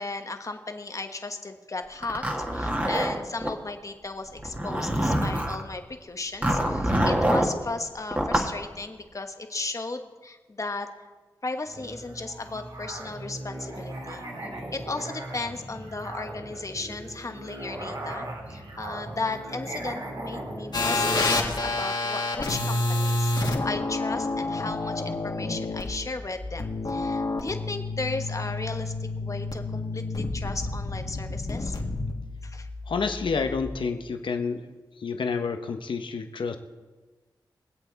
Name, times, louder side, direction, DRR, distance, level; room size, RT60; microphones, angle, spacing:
voice 1, 0.0-11.1 11.4-14.2 14.7-28.9 29.2-31.8 32.4-32.7, left 3 dB, 40° left, 6 dB, 1.3 m, -35 dB
Zipper (clothing), 2.0-3.5 4.4-5.6 6.4-7.5 8.1-8.5, right 1 dB, 20° right, 1.8 m, -25 dB
Musical instrument, 11.7-21.8, right 1 dB, 65° right, 3.2 m, -38 dB
sound 1, 20.7-33.7, left 2 dB, 60° left, 2.1 m, -29 dB
voice 2, 32.9-34.7 35.0-36.6, left 5 dB, 80° left, 6 dB, 0.9 m, -29 dB
22.5 x 8.2 x 4.0 m, 1.3 s
wide cardioid pair, 65°, 8 cm